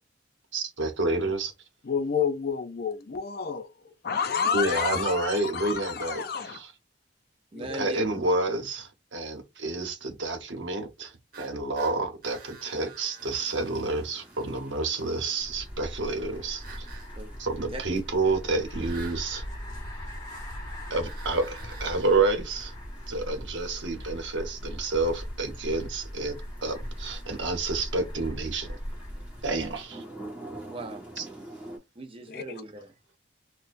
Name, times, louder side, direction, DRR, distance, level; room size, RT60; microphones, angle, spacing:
voice 1, 0.5-1.5 4.5-6.7 7.6-16.9 17.4-19.4 20.9-22.7 23.1-28.7 29.4-30.0 31.2-31.3, right 2 dB, 80° right, 0.9 m, -29 dB
voice 2, 1.8-3.7 4.0-6.6 7.5-7.9 32.3-32.6, left 6 dB, 55° left, 0.4 m, -30 dB
voice 3, 7.5-8.0 17.2-17.3 17.7-17.8 30.7-31.0 32.0-33.2, right 3 dB, 30° right, 0.5 m, -39 dB
sound 1, 11.3-14.5 16.6-17.1 18.8-19.3 21.0-22.2, right 5 dB, 50° right, 1.2 m, -48 dB
sound 2, 13.2-31.8, right 1 dB, 10° right, 1.2 m, -49 dB
sound 3, 15.4-29.8, equal, 25° left, 1.3 m, -39 dB
4.3 x 2.2 x 2.5 m
head